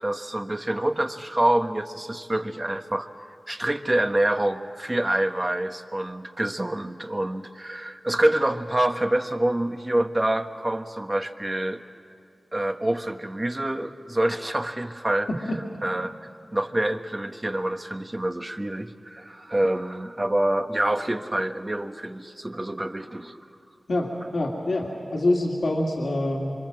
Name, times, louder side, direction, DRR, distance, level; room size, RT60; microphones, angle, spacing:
voice 1, 0.0-3.1 3.5-11.8 12.5-15.3 15.8-16.2 16.5-23.4, right 1 dB, 30° right, 7 dB, 1.4 m, -26 dB
voice 2, 23.9-26.5, left 1 dB, 75° left, -1 dB, 2.5 m, -25 dB
26.0 x 25.0 x 7.7 m, 2.4 s
cardioid pair, 40°, 0 cm